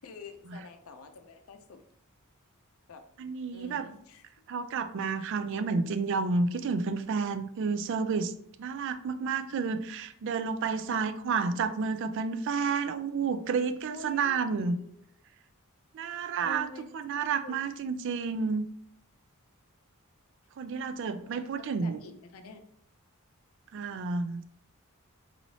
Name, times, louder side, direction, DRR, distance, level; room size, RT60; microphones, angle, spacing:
voice 1, 0.0-1.8 2.9-3.0 3.5-4.2 10.6-11.2 13.9-14.9 16.4-17.5 21.0-22.6, left 4 dB, 70° left, 7 dB, 0.5 m, -48 dB
voice 2, 3.2-3.9 4.5-8.3 8.6-14.8 15.9-16.7 16.9-18.6 20.6-22.0 23.7-24.5, right 5 dB, 55° right, 10 dB, 0.3 m, -30 dB
4.1 x 3.1 x 2.7 m, 0.68 s
head